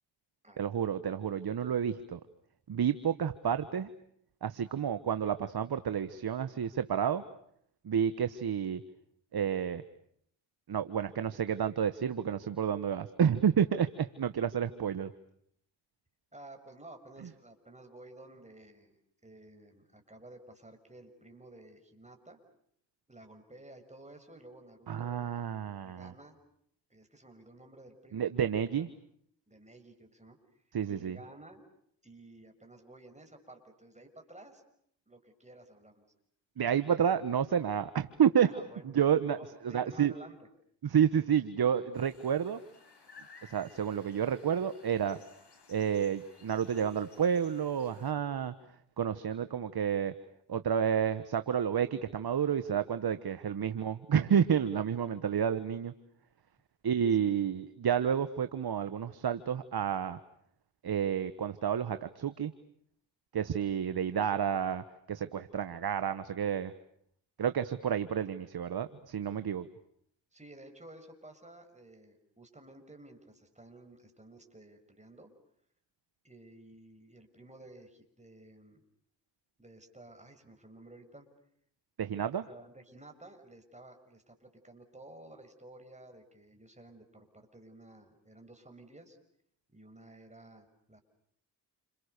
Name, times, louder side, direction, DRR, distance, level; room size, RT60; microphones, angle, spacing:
voice 1, 0.6-2.2 2.7-3.9 4.4-7.2 7.8-8.8 9.3-9.8 10.7-15.1 24.9-26.1 28.1-28.9 30.7-31.2 36.6-38.5 38.8-39.4 39.6-40.1 40.8-42.6 43.4-45.2 45.7-48.5 49.0-50.1 50.5-55.9 56.8-60.2 60.8-62.5 63.3-66.7 67.4-69.7 82.0-82.5, right 8 dB, 55° right, 11 dB, 1.4 m, -30 dB
voice 2, 16.3-19.0 19.2-22.4 23.1-25.3 25.8-26.4 26.9-28.9 29.5-30.4 30.8-31.6 32.0-34.6 35.1-36.1 38.4-38.9 39.2-40.4 57.1-57.3 70.3-75.3 76.2-78.8 79.6-81.3 82.5-89.2 89.7-91.0, right 2 dB, 15° right, 5 dB, 6.5 m, -53 dB
sound 1, 41.9-48.1, left 4 dB, 60° left, 6.1 m, -58 dB
29.5 x 28.0 x 6.8 m, 0.68 s
supercardioid pair, 50°, 45 cm